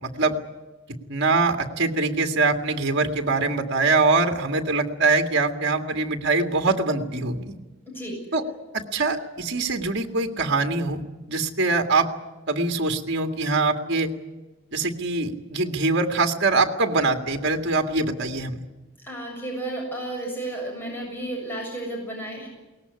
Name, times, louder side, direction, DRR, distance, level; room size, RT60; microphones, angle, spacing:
voice 1, 0.0-0.3 1.1-7.6 8.3-8.4 8.7-11.0 11.3-12.1 12.5-14.1 14.7-18.6, right 3 dB, 55° right, 5 dB, 2.0 m, -23 dB
voice 2, 19.0-22.5, right 1 dB, 10° left, -1 dB, 7.5 m, -32 dB
22.0 x 19.0 x 9.7 m, 1.2 s
head